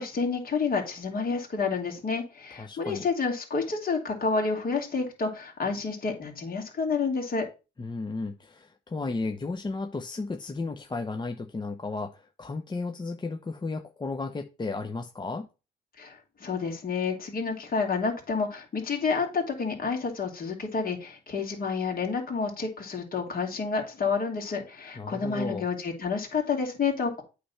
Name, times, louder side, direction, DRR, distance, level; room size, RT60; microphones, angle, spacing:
voice 1, 0.0-7.5 16.0-27.2, left 4 dB, 45° left, 1 dB, 2.7 m, -29 dB
voice 2, 2.5-3.0 7.8-15.5 25.0-25.7, left 3 dB, 20° left, 4 dB, 0.8 m, -34 dB
8.5 x 3.4 x 5.6 m, 0.30 s
cardioid pair, 90°, 20 cm